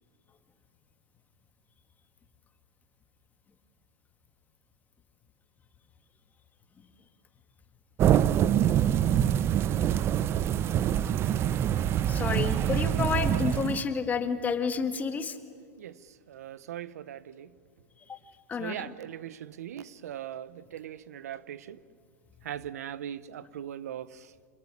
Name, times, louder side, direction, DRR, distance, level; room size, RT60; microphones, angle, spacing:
sound 1, 8.0-13.8, right 10 dB, 30° right, 0.6 m, -25 dB
voice 1, 12.1-15.4 18.1-18.2 18.5-18.9, left 5 dB, 20° left, 8 dB, 1.9 m, -30 dB
voice 2, 16.3-17.5 18.6-21.8 22.4-24.3, right 10 dB, 85° right, 18 dB, 0.9 m, -40 dB
27.5 x 19.5 x 9.8 m, 2.1 s
supercardioid pair, 130°, 8 cm